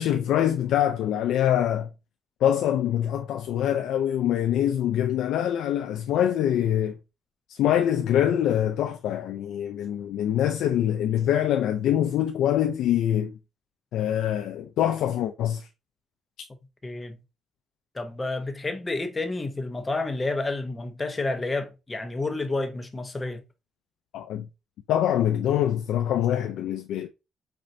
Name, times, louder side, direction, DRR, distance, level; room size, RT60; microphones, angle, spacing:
voice 1, 0.0-1.9 2.4-7.0 7.5-13.4 13.9-15.7 24.1-24.5 24.9-27.1, left 10 dB, 85° left, 0.3 m, -24 dB
voice 2, 16.8-17.2 17.9-23.4, left 2 dB, 25° left, 0.7 m, -30 dB
5.2 x 2.5 x 2.7 m
cardioid pair, 90°, 0 cm